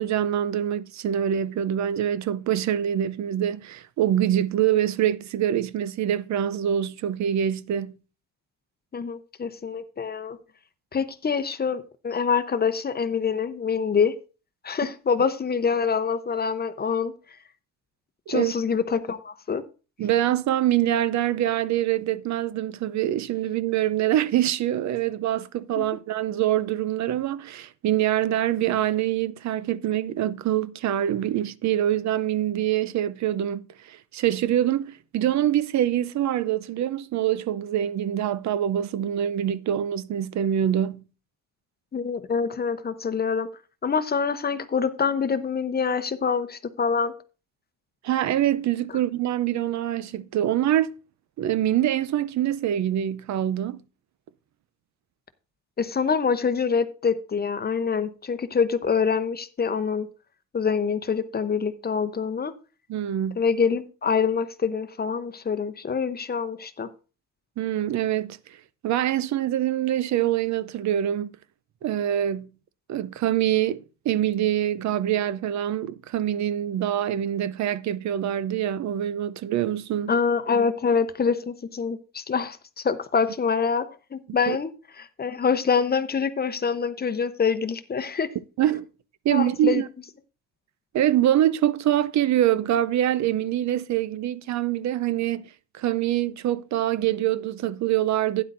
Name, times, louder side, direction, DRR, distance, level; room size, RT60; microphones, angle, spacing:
voice 1, 0.0-8.0 18.3-18.5 20.0-41.0 48.0-50.9 51.4-53.8 62.9-63.4 67.6-68.6 68.8-71.3 71.8-72.5 72.9-80.1 84.5-84.6 88.6-88.9 89.2-89.9 90.9-95.5 95.7-98.4, right 11 dB, 65° right, 0.6 m, -25 dB
voice 2, 8.9-10.4 10.9-14.1 14.6-17.1 18.3-19.6 25.8-25.9 41.9-43.5 43.8-47.1 55.8-60.1 60.5-62.5 63.4-66.9 80.1-83.9 84.1-84.7 85.0-88.3 89.3-89.8, left 6 dB, 30° left, 0.8 m, -25 dB
12.0 x 9.6 x 2.6 m
cardioid pair, 90°, 30 cm